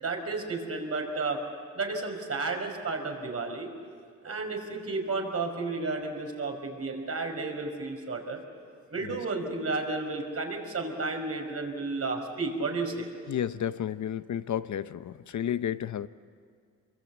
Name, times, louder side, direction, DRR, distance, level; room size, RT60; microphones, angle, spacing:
voice 1, 0.0-1.4 1.7-3.7 4.2-8.4 8.9-13.1, right 3 dB, 50° right, 4.9 m, -32 dB
voice 2, 13.3-16.1, left 9 dB, 65° left, 0.7 m, -32 dB
27.0 x 22.5 x 8.3 m
cardioid pair, 105°, 32 cm